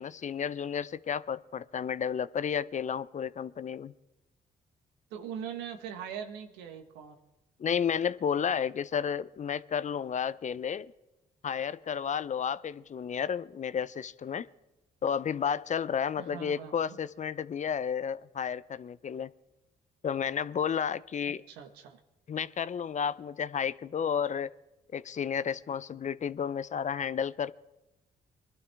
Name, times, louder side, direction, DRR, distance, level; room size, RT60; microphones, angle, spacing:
voice 1, 0.0-3.9 7.6-10.9 11.4-14.5 15.0-19.3 20.0-21.4 22.3-24.5 24.9-27.5, left 7 dB, 45° left, 17 dB, 0.6 m, -32 dB
voice 2, 5.1-7.2 16.2-17.0 21.5-22.0, right 8 dB, 90° right, 6 dB, 1.3 m, -41 dB
22.0 x 12.0 x 3.5 m, 0.99 s
supercardioid pair, 50°, 17 cm